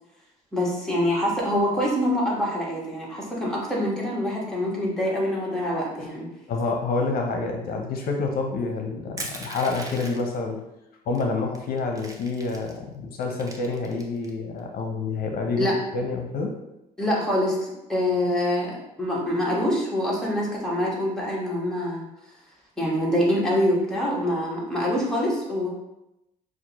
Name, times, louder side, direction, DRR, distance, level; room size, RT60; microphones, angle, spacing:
voice 1, 0.5-6.3 15.6-15.7 17.0-22.0 22.8-25.7, left 1 dB, 5° left, -5 dB, 1.4 m, -25 dB
voice 2, 6.5-10.6 11.1-15.7 15.9-16.6, left 3 dB, 60° left, 2 dB, 0.7 m, -28 dB
Crushing, 9.2-10.4 11.1-11.2 11.5-12.8 13.2-14.3, right 2 dB, 20° right, 0.7 m, -38 dB
6.1 x 2.5 x 2.9 m, 0.90 s
cardioid pair, 110°, 17 cm